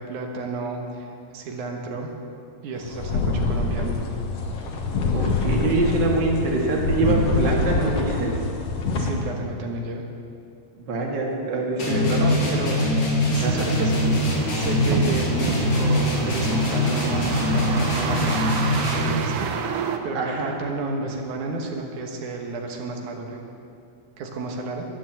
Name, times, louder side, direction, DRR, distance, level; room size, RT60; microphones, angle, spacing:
voice 1, 0.0-2.1 2.6-4.0 9.0-10.1 12.2-12.8 13.3-18.3 18.9-23.4 24.2-24.9, right 3 dB, 85° right, 1 dB, 2.7 m, -32 dB
sound 1, 2.8-9.1, left 3 dB, 60° left, 2.2 m, -25 dB
voice 2, 5.1-8.3 10.9-12.3 13.4-13.7 20.1-20.5, right 2 dB, 40° right, -2 dB, 2.3 m, -24 dB
sound 2, 11.8-19.3, left 1 dB, 75° left, 4.3 m, -23 dB
sound 3, 13.4-20.0, right 6 dB, 70° right, 1.4 m, -30 dB
12.0 x 10.5 x 7.7 m, 2.5 s
omnidirectional pair, 3.4 m